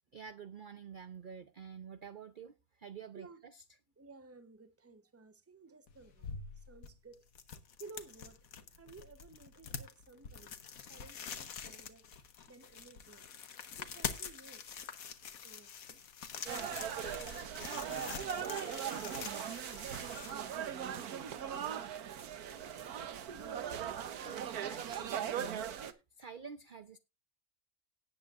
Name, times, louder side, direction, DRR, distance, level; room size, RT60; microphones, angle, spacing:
voice 1, 0.1-3.6 24.2-27.0, right 7 dB, 50° right, 0.6 m, -49 dB
voice 2, 4.0-6.3 6.7-7.2 7.8-8.4 8.8-10.6 10.9-12.1 12.5-13.2 13.8-14.8 15.4-16.0 16.6-18.4 18.8-20.5, right 3 dB, 15° right, 0.7 m, -56 dB
sound 1, 5.9-21.0, left 7 dB, 70° left, 1.6 m, -46 dB
sound 2, 16.5-25.9, right 9 dB, 85° right, 1.5 m, -39 dB
18.0 x 8.3 x 2.5 m
omnidirectional pair, 1.6 m